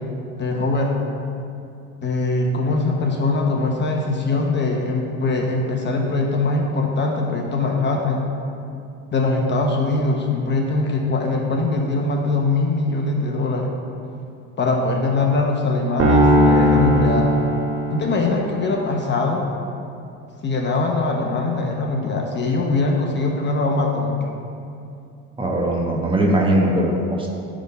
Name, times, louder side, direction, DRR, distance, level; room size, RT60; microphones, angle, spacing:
voice 1, 0.4-0.9 2.0-8.3 9.1-13.7 14.6-17.3 17.9-19.5 20.4-24.2, left 3 dB, 35° left, 0 dB, 0.9 m, -22 dB
sound 1, 16.0-18.4, equal, 40° right, 1.7 m, -17 dB
voice 2, 25.4-27.3, right 1 dB, 15° right, -1 dB, 1.2 m, -20 dB
9.9 x 3.7 x 5.5 m, 2.6 s
supercardioid pair, 100°, 34 cm